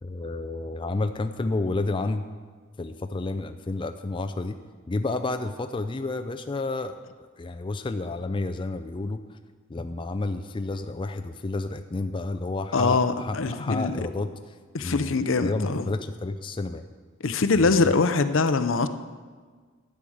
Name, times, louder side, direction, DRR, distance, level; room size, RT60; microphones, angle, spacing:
voice 1, 0.0-2.3 2.8-4.6 4.9-9.2 9.7-15.1 15.4-16.8 17.6-17.9, left 2 dB, 25° left, 8 dB, 0.4 m, -30 dB
voice 2, 12.7-14.0 14.7-15.8 17.2-18.9, left 4 dB, 65° left, 11 dB, 0.6 m, -23 dB
12.0 x 8.5 x 6.3 m, 1.5 s
head